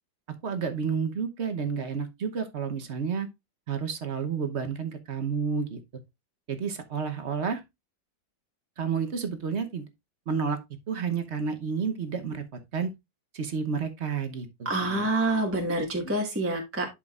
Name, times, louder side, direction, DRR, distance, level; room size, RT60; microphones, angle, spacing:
voice 1, 0.3-3.3 3.7-5.8 6.5-7.6 8.8-9.9 10.3-10.6 10.9-12.9 13.3-15.1 16.0-16.1, right 6 dB, 45° right, 1.0 m, -30 dB
voice 2, 14.6-16.9, right 2 dB, 10° right, 1.2 m, -27 dB
11.0 x 5.0 x 2.4 m
omnidirectional pair, 2.0 m